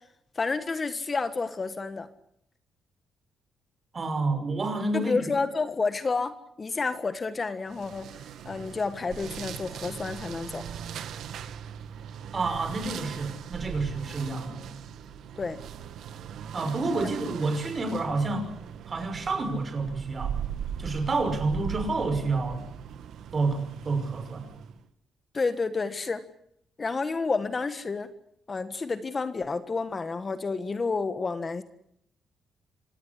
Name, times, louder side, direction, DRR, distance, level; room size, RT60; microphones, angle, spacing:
voice 1, 0.3-2.1 4.9-8.1 8.4-10.6 15.4-15.6 25.3-26.2 26.8-28.1 28.5-31.6, left 4 dB, 30° left, 11 dB, 1.6 m, -30 dB
voice 2, 3.9-5.3 12.3-14.6 16.5-18.5 18.9-20.3 20.8-22.7 23.3-24.5, right 3 dB, 35° right, 8 dB, 6.2 m, -29 dB
sound 1, 7.7-24.8, right 8 dB, 80° right, 2.0 m, -39 dB
26.5 x 17.5 x 9.9 m, 0.73 s
cardioid pair, 105°, 0 cm